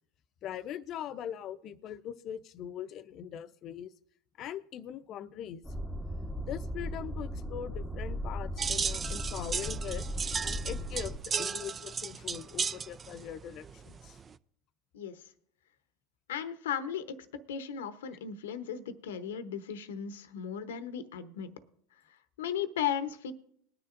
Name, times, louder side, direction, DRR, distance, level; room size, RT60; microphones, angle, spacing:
voice 1, 0.4-3.9 4.4-5.6 6.4-10.1 10.4-14.2, left 10 dB, 50° left, 12 dB, 0.6 m, -41 dB
sound 1, 5.6-11.2, equal, 5° right, 1.0 m, -37 dB
sound 2, 8.6-14.3, right 6 dB, 30° right, 0.4 m, -35 dB
voice 2, 14.9-15.3 16.3-21.5 22.1-23.3, left 8 dB, 85° left, 12 dB, 0.9 m, -36 dB
20.0 x 10.0 x 2.6 m, 0.65 s
hypercardioid pair, 90°, 0 cm